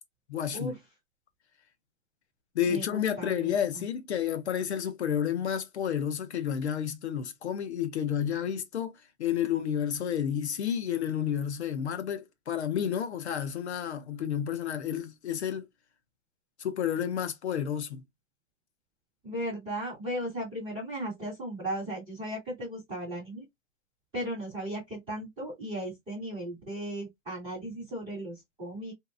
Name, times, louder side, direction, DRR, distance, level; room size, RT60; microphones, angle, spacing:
voice 1, 0.3-0.8 2.5-8.9 9.2-15.7 16.6-18.0, left 9 dB, 55° left, 0.6 m, -30 dB
voice 2, 2.7-3.5 19.2-23.4 24.1-28.9, right 1 dB, ahead, 0.4 m, -36 dB
3.0 x 2.8 x 2.5 m
hypercardioid pair, 165°, 40 cm